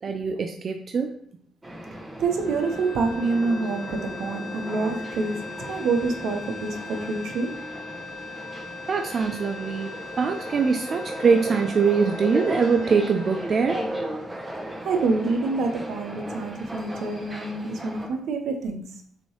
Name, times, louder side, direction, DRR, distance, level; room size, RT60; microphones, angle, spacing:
voice 1, 0.0-1.1 8.9-13.8, right 5 dB, 45° right, 5 dB, 0.4 m, -23 dB
sound 1, 1.6-18.1, right 1 dB, 20° right, 0.9 m, -36 dB
sound 2, 2.2-14.5, left 4 dB, 80° left, 0.6 m, -40 dB
voice 2, 2.2-7.6 14.7-19.0, right 3 dB, 75° right, 5 dB, 0.8 m, -27 dB
6.0 x 2.8 x 3.1 m, 0.62 s
cardioid pair, 90°, 0 cm